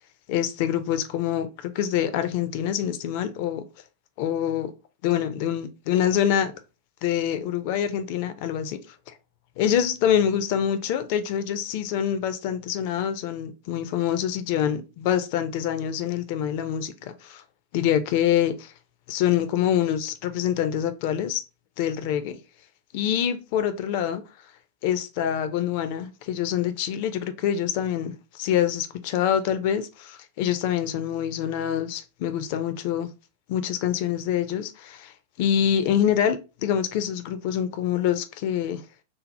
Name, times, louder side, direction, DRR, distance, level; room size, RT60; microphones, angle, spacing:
voice 1, 0.3-3.6 4.2-4.7 5.0-6.5 7.0-8.8 9.6-17.4 17.7-18.7 19.1-21.4 21.8-22.4 22.9-24.2 24.8-33.1 33.5-35.1 35.4-38.8, left 10 dB, 45° left, 0.4 m, -25 dB
2.7 x 2.0 x 3.0 m
figure-of-eight pair, 90°, 0 cm